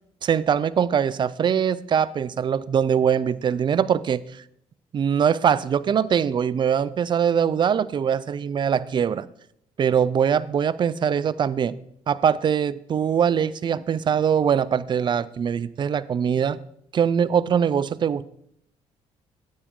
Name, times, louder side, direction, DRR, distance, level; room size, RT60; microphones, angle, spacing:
voice 1, 0.2-4.4 4.9-9.3 9.8-11.8 12.1-16.6 16.9-18.2, right 8 dB, 40° right, 0.4 m, -22 dB
9.5 x 8.3 x 3.7 m
cardioid pair, 115°, 12 cm